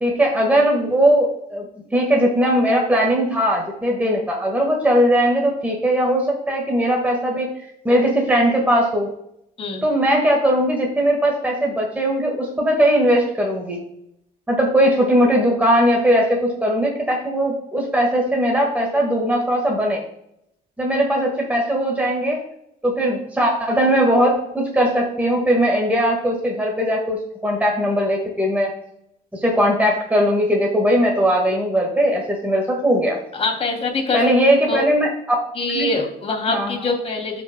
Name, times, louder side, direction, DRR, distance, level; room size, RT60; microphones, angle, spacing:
voice 1, 0.0-1.7 1.9-7.6 7.8-9.1 9.8-13.8 14.5-20.0 20.8-22.4 22.8-28.7 29.3-33.2 34.1-35.1 35.7-35.9 36.5-36.8, equal, 10° right, -1 dB, 1.7 m, -19 dB
voice 2, 33.3-34.2 34.7-34.8 35.5-37.4, left 3 dB, 35° left, 1 dB, 2.8 m, -24 dB
13.0 x 5.3 x 2.2 m, 0.77 s
cardioid pair, 110°, 17 cm